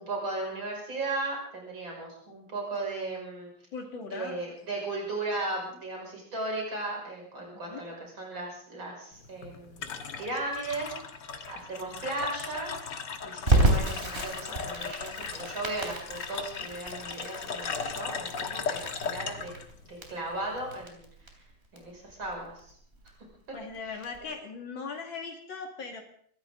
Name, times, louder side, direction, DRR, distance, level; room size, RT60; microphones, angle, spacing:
voice 1, 0.0-3.5 4.1-9.9 10.2-10.9 11.5-12.7 13.2-19.5 19.9-21.1 21.7-22.7 23.5-23.9, right 2 dB, 85° right, -1 dB, 6.7 m, -36 dB
voice 2, 3.7-4.6 7.5-7.8 23.5-26.0, left 4 dB, 80° left, 1 dB, 2.9 m, -39 dB
sound 1, 9.1-20.8, left 6 dB, 65° left, 2.0 m, -38 dB
Crackle, 13.5-24.2, right 2 dB, 30° right, 3.5 m, -31 dB
23.0 x 16.0 x 3.8 m, 0.62 s
omnidirectional pair, 2.1 m